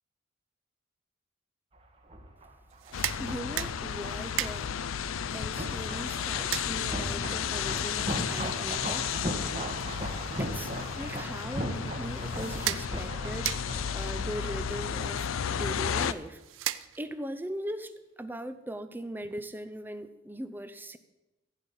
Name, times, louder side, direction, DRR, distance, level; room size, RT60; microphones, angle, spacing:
sound 1, 1.7-15.5 15.8-15.9, right 1 dB, 30° right, 1.4 m, -39 dB
sound 2, 2.7-17.3, right 13 dB, 70° right, 0.5 m, -40 dB
sound 3, 2.9-16.1, left 7 dB, 80° left, 0.5 m, -33 dB
voice 1, 3.2-4.8 5.3-10.0 10.4-16.4 17.0-17.9 18.2-21.0, right 1 dB, 10° right, 11 dB, 0.6 m, -40 dB
15.0 x 5.6 x 8.2 m, 1.0 s
head